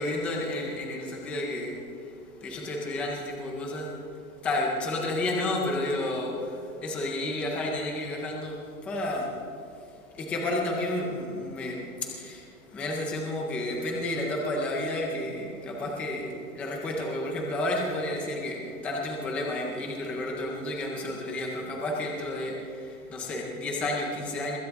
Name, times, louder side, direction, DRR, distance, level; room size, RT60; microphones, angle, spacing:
voice 1, 0.0-4.0 4.4-9.4 9.7-24.6, left 1 dB, 5° left, 0 dB, 0.4 m, -31 dB
21.0 x 16.0 x 3.5 m, 2.5 s
supercardioid pair, 160°, 44 cm